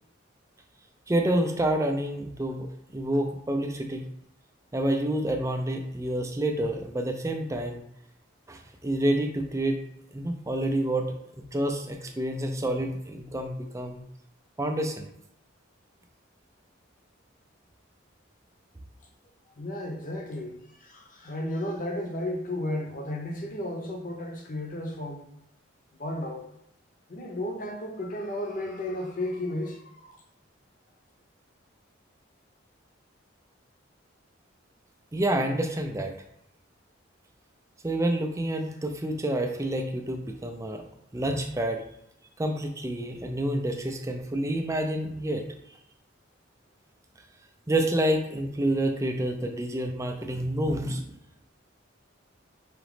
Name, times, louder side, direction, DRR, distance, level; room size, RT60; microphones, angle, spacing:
voice 1, 1.1-2.7 2.9-4.0 4.7-7.8 8.5-9.8 10.1-11.1 11.5-14.0 14.6-15.1 35.1-36.1 37.8-40.8 41.1-41.8 42.4-45.4 47.7-51.0, right 1 dB, 15° right, 4 dB, 0.4 m, -28 dB
voice 2, 19.5-25.3 25.9-26.4 27.1-30.2, left 1 dB, 40° left, 2 dB, 0.7 m, -33 dB
4.9 x 2.9 x 3.3 m, 0.75 s
head